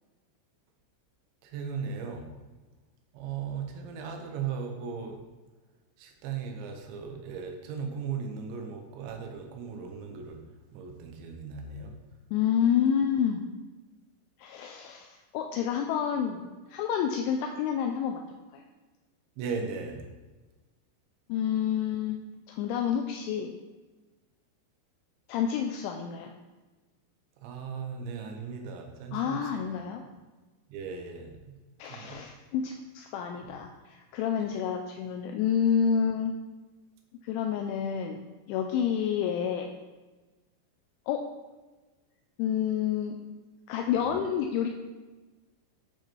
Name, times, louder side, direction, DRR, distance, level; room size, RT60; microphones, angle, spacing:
voice 1, 1.4-2.3 3.1-5.2 6.0-10.4 10.7-11.9 19.4-20.0 27.4-29.7 30.7-31.6 31.9-32.2 33.4-33.6 43.9-44.1, right 6 dB, 75° right, 3 dB, 3.1 m, -37 dB
voice 2, 12.3-13.4 14.4-18.2 18.5-18.6 21.3-22.2 22.5-23.5 25.3-26.3 29.1-30.0 31.8-36.3 37.2-39.7 41.1-41.2 42.4-43.2 43.7-44.7, left 8 dB, 85° left, 4 dB, 2.7 m, -29 dB
8.9 x 5.6 x 4.5 m, 1.2 s
omnidirectional pair, 5.9 m